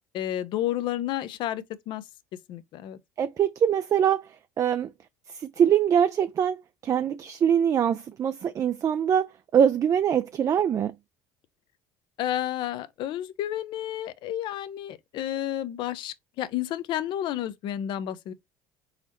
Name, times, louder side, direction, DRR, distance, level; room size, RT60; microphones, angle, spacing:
voice 1, 0.1-2.0 2.5-3.0 12.2-18.3, left 12 dB, 60° left, 0.6 m, -31 dB
voice 2, 3.2-4.3 4.6-4.9 5.3-6.6 6.8-10.9, right 8 dB, 35° right, 0.3 m, -23 dB
4.0 x 4.0 x 3.0 m
supercardioid pair, 80°, 9 cm